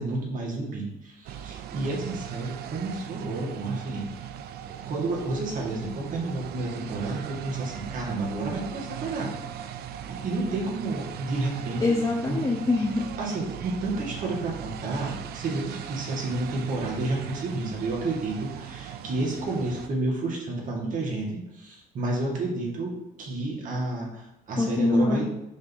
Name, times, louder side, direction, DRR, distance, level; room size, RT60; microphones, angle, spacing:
voice 1, 0.0-4.1 4.6-9.3 9.6-9.8 10.0-12.0 12.3-12.4 13.2-25.3, right 2 dB, 50° right, -2 dB, 2.1 m, -31 dB
sound 1, 1.3-19.9, right 9 dB, 70° right, 0.5 m, -39 dB
voice 2, 11.8-13.1 24.6-25.3, left 2 dB, 20° left, -1 dB, 0.8 m, -24 dB
5.3 x 3.8 x 5.6 m, 0.90 s
cardioid pair, 110°, 17 cm